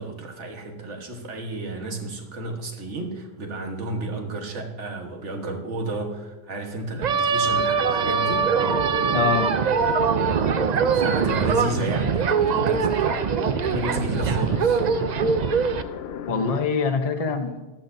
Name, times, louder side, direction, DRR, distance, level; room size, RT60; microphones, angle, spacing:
voice 1, 0.0-8.5 10.8-13.3 13.7-14.8, right 2 dB, 75° right, 3 dB, 1.7 m, -31 dB
sound 1, 7.0-15.8, right 6 dB, 55° right, 0.5 m, -22 dB
sound 2, 7.4-16.7, left 8 dB, 65° left, 0.8 m, -36 dB
voice 2, 9.1-9.5 16.3-17.7, left 5 dB, 35° left, 6 dB, 0.9 m, -24 dB
14.5 x 12.0 x 2.7 m, 1.2 s
omnidirectional pair, 1.2 m